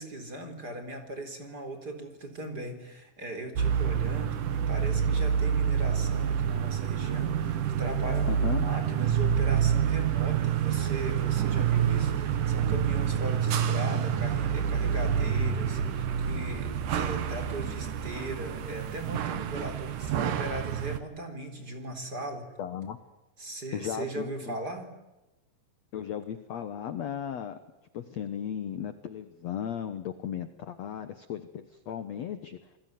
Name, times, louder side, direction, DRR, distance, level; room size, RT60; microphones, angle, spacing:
voice 1, 0.0-22.5 23.4-24.9, right 1 dB, 25° right, 6 dB, 4.0 m, -38 dB
sound 1, 3.6-21.0, right 8 dB, 60° right, 2.8 m, -27 dB
voice 2, 8.3-8.7 22.6-23.0 23.7-24.5 25.9-27.6 27.9-32.6, left 9 dB, 65° left, 10 dB, 1.7 m, -36 dB
29.0 x 21.0 x 9.5 m, 0.98 s
omnidirectional pair, 4.8 m